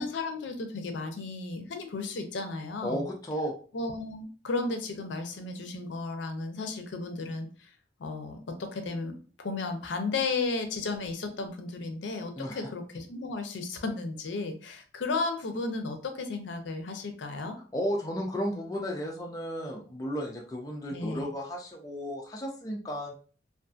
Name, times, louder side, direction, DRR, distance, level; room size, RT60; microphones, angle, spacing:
voice 1, 0.0-3.0 3.7-7.7 8.0-17.6 20.9-21.2, left 3 dB, 80° left, 6 dB, 0.5 m, -34 dB
voice 2, 2.8-3.5 12.4-12.7 17.7-23.1, equal, 20° left, 0 dB, 0.3 m, -33 dB
2.5 x 2.4 x 2.4 m, 0.41 s
head